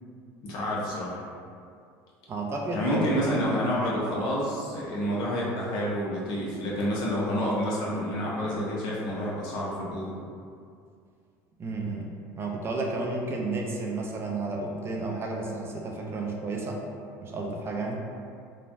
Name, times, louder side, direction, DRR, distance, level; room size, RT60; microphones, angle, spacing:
voice 1, 0.4-1.2 2.7-10.1, equal, 65° left, -6 dB, 0.8 m, -29 dB
voice 2, 2.3-3.5 11.6-12.1 12.4-16.8 17.2-18.0, right 3 dB, 30° right, 0 dB, 0.4 m, -32 dB
3.1 x 2.1 x 2.6 m, 2.3 s
supercardioid pair, 100°, 8 cm